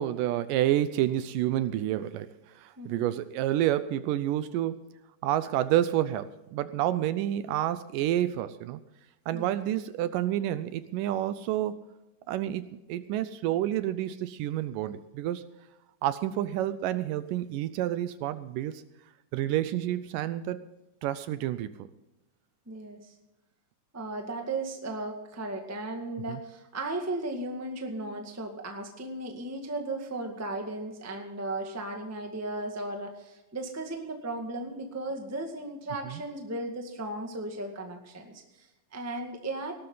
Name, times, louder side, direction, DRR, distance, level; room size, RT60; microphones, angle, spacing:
voice 1, 0.0-4.8 5.2-8.8 9.3-11.8 12.3-15.5 16.0-18.8 19.3-20.6 21.0-21.9 26.3-26.4 36.1-36.2, right 12 dB, 80° right, 13 dB, 2.1 m, -29 dB
voice 2, 22.7-23.1 23.9-39.7, right 2 dB, 10° right, 3 dB, 0.6 m, -36 dB
18.0 x 12.5 x 4.0 m, 0.94 s
omnidirectional pair, 4.1 m